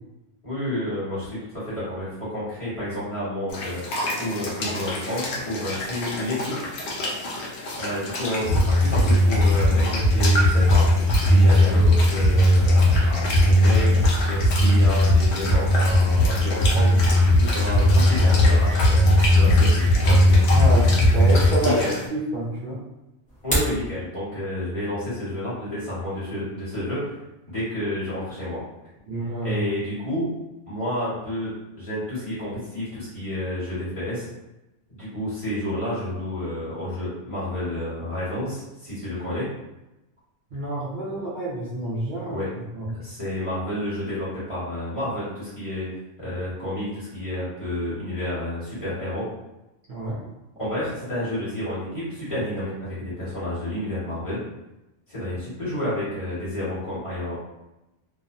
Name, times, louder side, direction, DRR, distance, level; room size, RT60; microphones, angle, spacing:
voice 1, 0.4-3.8 4.2-6.5 7.8-10.9 11.2-13.9 14.2-19.0 19.3-20.2 21.6-21.9 23.4-27.0 27.5-28.6 29.4-30.3 30.7-34.3 34.9-39.5 42.3-42.5 43.0-45.9 46.2-49.3 50.6-54.4 55.1-57.4, left 1 dB, 30° left, -12 dB, 1.4 m, -30 dB
sound 1, 3.5-22.1, left 1 dB, 75° left, 0.9 m, -31 dB
sound 2, 8.4-21.5, left 1 dB, 50° left, 1.3 m, -18 dB
voice 2, 20.5-21.8 22.1-22.8 29.1-29.6 40.5-42.4 42.7-43.0 49.9-50.2, right 2 dB, 55° right, -8 dB, 0.7 m, -28 dB
sound 3, 23.3-23.8, equal, 10° left, 0.7 m, -25 dB
2.7 x 2.1 x 2.5 m, 0.97 s
omnidirectional pair, 1.1 m